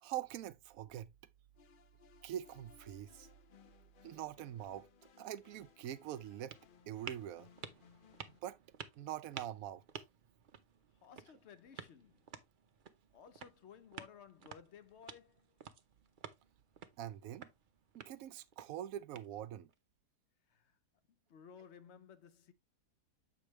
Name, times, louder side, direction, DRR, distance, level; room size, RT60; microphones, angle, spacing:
voice 1, 0.0-1.1 2.2-3.3 4.0-4.9 5.2-6.6 6.9-7.5 8.4-8.6 9.0-9.8 17.0-17.5 17.9-19.7, right 11 dB, 70° right, 0.9 m, -44 dB
sound 1, 1.5-8.4, left 8 dB, 85° left, 0.4 m, -64 dB
sound 2, 5.3-19.7, right 7 dB, 55° right, 0.5 m, -54 dB
voice 2, 11.0-12.3 13.1-15.6 20.5-20.8 21.1-22.5, left 7 dB, 60° left, 0.7 m, -57 dB
7.6 x 5.0 x 3.0 m
omnidirectional pair, 1.7 m